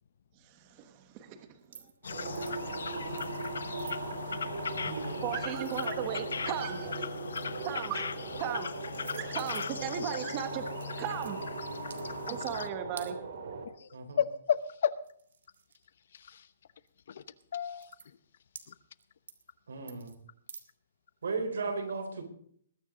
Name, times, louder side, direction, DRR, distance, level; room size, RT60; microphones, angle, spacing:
voice 1, 0.4-2.6 5.2-7.2 7.6-8.7 9.1-10.6 11.0-11.4 12.3-13.2, right 9 dB, 25° right, 8 dB, 1.2 m, -37 dB
sound 1, 1.6-2.0 2.3-2.6 3.2-3.5 3.8-4.0 5.0-6.5 6.9-7.8 8.5-8.6 8.9-9.9 10.7-11.4 11.8-12.0 13.0-13.1 14.6-14.7 15.0-16.2 16.9-17.0 17.4-17.5 17.8-18.1 18.6-19.0 19.3-19.5 19.9-20.2 20.5-20.6, right 6 dB, 75° right, 1.8 m, -50 dB
sound 2, 2.0-12.7, left 6 dB, 90° left, 0.9 m, -39 dB
sound 3, 2.1-13.7, right 4 dB, 55° right, 2.8 m, -39 dB
voice 2, 4.8-5.2 13.9-14.2 19.7-20.1 21.2-22.2, right 4 dB, 90° right, 5 dB, 4.2 m, -35 dB
voice 3, 14.2-14.9 16.1-16.5 17.1-17.2 17.5-17.9 18.7-18.8, left 8 dB, 50° left, 16 dB, 0.9 m, -31 dB
20.5 x 9.7 x 3.9 m, 0.63 s
hypercardioid pair, 170°, 0 cm